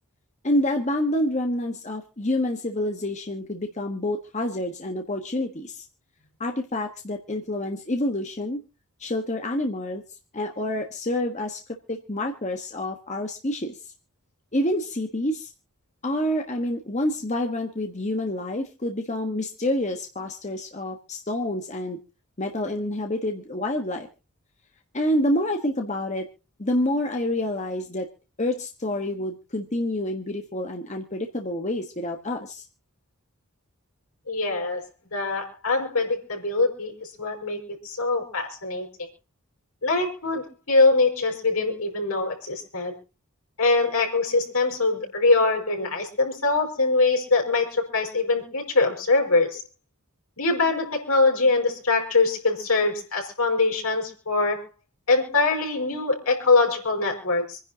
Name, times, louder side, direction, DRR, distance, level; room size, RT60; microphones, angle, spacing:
voice 1, 0.4-5.8 6.4-8.6 9.0-10.0 10.3-11.6 11.9-13.8 14.5-15.5 16.0-22.0 22.4-24.1 24.9-26.3 26.6-28.1 28.4-32.6, left 1 dB, 30° left, 3 dB, 1.3 m, -28 dB
voice 2, 34.3-34.8 35.1-38.9 39.8-42.9 43.6-49.6 50.4-54.7 55.1-57.6, left 3 dB, 80° left, 1 dB, 5.5 m, -23 dB
27.0 x 10.5 x 2.8 m, 0.33 s
head